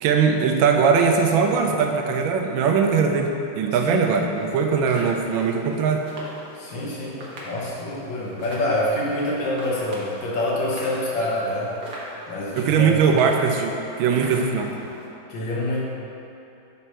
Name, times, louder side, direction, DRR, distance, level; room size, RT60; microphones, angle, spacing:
voice 1, 0.0-6.0 12.6-14.7, right 6 dB, 80° right, 3 dB, 1.3 m, -20 dB
voice 2, 3.8-4.3 6.5-11.7 12.3-13.3 14.3-14.7 15.3-15.8, left 1 dB, 70° left, -5 dB, 1.9 m, -27 dB
sound 1, 4.3-15.1, right 1 dB, 60° right, 1.7 m, -42 dB
7.3 x 4.2 x 4.4 m, 2.8 s
omnidirectional pair, 2.2 m